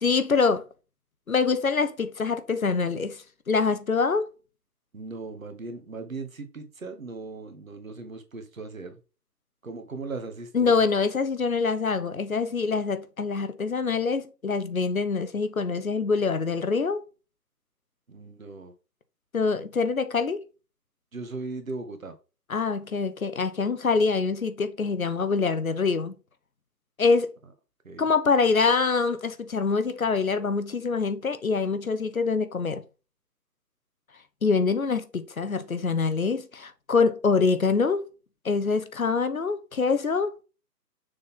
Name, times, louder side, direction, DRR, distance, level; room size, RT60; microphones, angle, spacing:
voice 1, 0.0-0.6 1.3-4.3 10.5-17.0 19.3-20.4 22.5-26.2 27.0-27.3 28.0-32.8 34.4-38.1 38.4-40.4, left 4 dB, 60° left, 0.9 m, -25 dB
voice 2, 4.9-9.0 9.6-10.8 18.1-18.7 21.1-22.1 27.8-28.1, right 3 dB, 55° right, 1.4 m, -38 dB
6.6 x 3.9 x 3.7 m
figure-of-eight pair, 150°, 49 cm